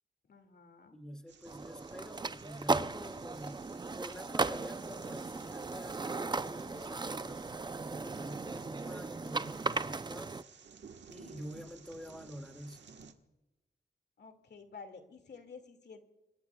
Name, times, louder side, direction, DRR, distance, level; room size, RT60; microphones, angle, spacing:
voice 1, 0.3-1.0 14.2-16.1, left 5 dB, 70° left, 6 dB, 2.2 m, -51 dB
voice 2, 0.9-3.6 3.9-7.5 7.8-10.4 11.1-12.8, equal, 5° left, 6 dB, 2.2 m, -48 dB
sound 1, 1.3-13.1, right 6 dB, 85° right, 1.4 m, -57 dB
sound 2, 1.5-10.4, right 3 dB, 25° right, 0.5 m, -36 dB
26.0 x 21.5 x 2.3 m, 1.0 s
wide cardioid pair, 95°, 18 cm